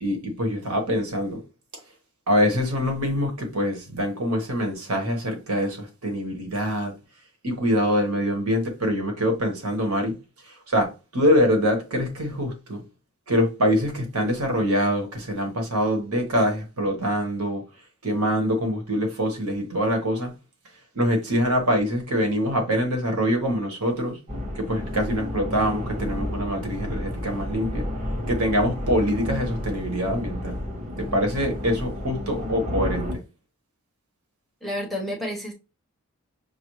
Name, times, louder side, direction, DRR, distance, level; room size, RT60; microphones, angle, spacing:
voice 1, 0.0-1.4 2.3-6.9 7.4-10.2 10.4-12.8 13.3-17.6 18.0-20.3 20.9-24.2 24.5-27.9 28.3-33.2, equal, 75° right, 1.4 m, -24 dB
sound 1, 24.3-33.1, left 1 dB, 30° right, 1.7 m, -31 dB
voice 2, 34.6-35.5, left 1 dB, ahead, 1.0 m, -30 dB
6.0 x 2.3 x 3.1 m
head